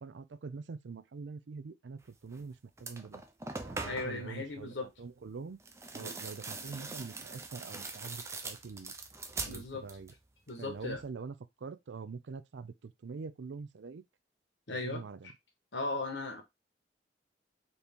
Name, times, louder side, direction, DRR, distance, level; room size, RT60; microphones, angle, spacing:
voice 1, 0.0-2.5 2.8-3.2 3.6-5.6 5.9-8.9 9.5-10.1 10.6-11.4 11.6-14.0 14.7-15.3, right 4 dB, 85° right, 0.5 m, -44 dB
sound 1, 2.3-2.5 2.8-4.3 5.6-10.2 10.5-11.1, right 3 dB, 15° right, 0.5 m, -42 dB
voice 2, 3.8-4.9 6.0-6.2 9.5-9.8 10.5-11.0 14.7-15.3 15.7-16.4, left 3 dB, 80° left, 1.2 m, -37 dB
4.1 x 3.0 x 3.5 m
head